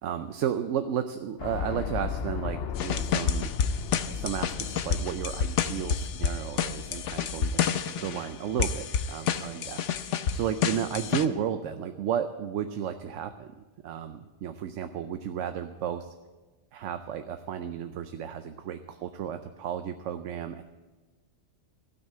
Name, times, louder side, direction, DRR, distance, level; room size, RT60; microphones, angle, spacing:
voice 1, 0.0-3.5 4.1-16.1 16.7-20.6, right 9 dB, 85° right, 8 dB, 1.0 m, -33 dB
sound 1, 1.4-7.6, left 6 dB, 60° left, 0.8 m, -36 dB
sound 2, 2.8-8.3 8.6-11.3, left 7 dB, 80° left, 1.0 m, -29 dB
15.5 x 6.4 x 8.7 m, 1.2 s
omnidirectional pair, 1.2 m